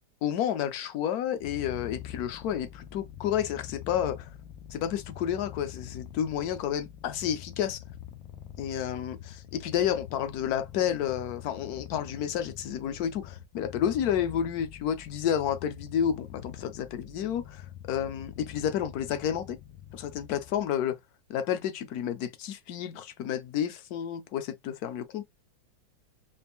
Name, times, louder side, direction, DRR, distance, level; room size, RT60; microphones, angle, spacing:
voice 1, 0.2-4.3 4.7-7.8 8.6-19.6 19.9-21.0 21.3-25.2, left 9 dB, 65° left, 1.0 m, -30 dB
Purr, 1.4-20.7, left 10 dB, 85° left, 1.3 m, -45 dB
4.2 x 2.2 x 3.5 m
omnidirectional pair, 2.0 m